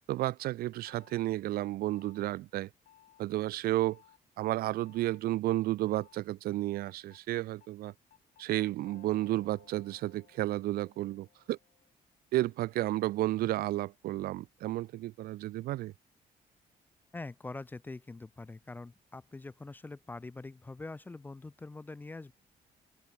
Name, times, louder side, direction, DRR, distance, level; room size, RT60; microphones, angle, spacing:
voice 1, 0.1-2.7 3.2-4.0 4.4-7.9 8.4-11.6 12.3-15.9, right 16 dB, 85° right, 0.5 m, -32 dB
sound 1, 0.9-1.2 1.9-2.2 2.9-3.2 3.9-4.2 4.9-5.2 5.9-6.2 6.9-11.9, left 12 dB, 70° left, 5.7 m, -62 dB
voice 2, 17.1-22.3, left 3 dB, 10° left, 0.4 m, -44 dB
cardioid pair, 160°, 15 cm